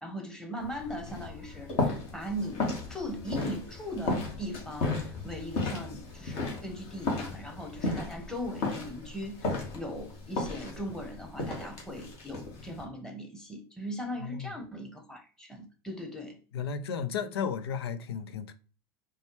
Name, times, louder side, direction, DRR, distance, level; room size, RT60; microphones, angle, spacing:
voice 1, 0.0-16.4, equal, 5° left, 1.0 m, -39 dB
sound 1, 0.6-12.8, left 2 dB, 50° left, 1.4 m, -35 dB
voice 2, 14.2-14.5 16.5-18.5, left 6 dB, 75° left, 0.5 m, -34 dB
4.0 x 2.3 x 3.0 m
hypercardioid pair, 80°, 13 cm